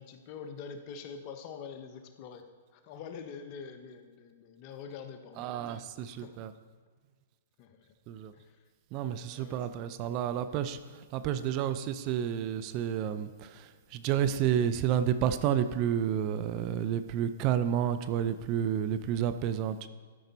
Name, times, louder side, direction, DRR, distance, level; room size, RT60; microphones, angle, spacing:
voice 1, 0.0-2.5 2.7-5.8 6.2-6.3 7.6-7.9 8.3-8.6 9.3-9.7, left 6 dB, 40° left, 7 dB, 0.8 m, -45 dB
voice 2, 5.4-6.5 8.1-8.3 8.9-19.9, right 9 dB, 40° right, 11 dB, 0.4 m, -30 dB
12.5 x 5.3 x 4.0 m, 1.5 s
hypercardioid pair, 130°, 0 cm